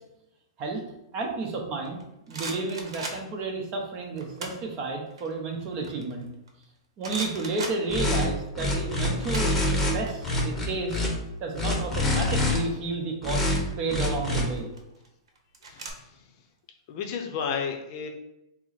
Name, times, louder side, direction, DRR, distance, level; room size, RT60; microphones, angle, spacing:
voice 1, 1.1-2.0 2.3-6.3 7.0-11.0 11.4-14.7, right 3 dB, 35° right, 1 dB, 0.9 m, -31 dB
sound 1, 1.8-3.5 4.2-4.7 5.1-6.6 7.0-8.4 8.7-10.1 10.4-10.6 10.8-12.4 13.4-13.8 14.4-15.9, right 3 dB, 80° right, 0.9 m, -39 dB
sound 2, 7.9-8.2 8.5-9.9 10.2-11.1 11.5-12.6 13.2-13.6 13.9-14.4, left 2 dB, 5° left, 1.0 m, -25 dB
voice 2, 15.7-16.2 16.9-18.1, left 6 dB, 45° left, 4 dB, 0.6 m, -32 dB
4.5 x 2.1 x 4.2 m, 0.87 s
hypercardioid pair, 135°, 3 cm